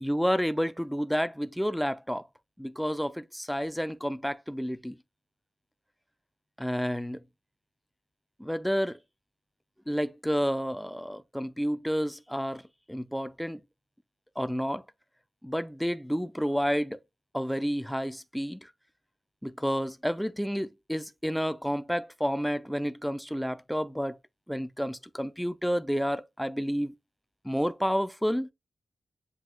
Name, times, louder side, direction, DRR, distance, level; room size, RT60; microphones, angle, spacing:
voice 1, 0.0-2.2 2.6-5.0 6.6-7.2 8.4-9.0 9.9-12.6 12.9-13.6 14.4-14.8 15.4-17.0 17.3-18.7 19.4-24.2 24.5-26.9 27.4-28.5, equal, ahead, 0.4 m, -30 dB
7.6 x 2.7 x 2.4 m
wide cardioid pair, 130°, 0 cm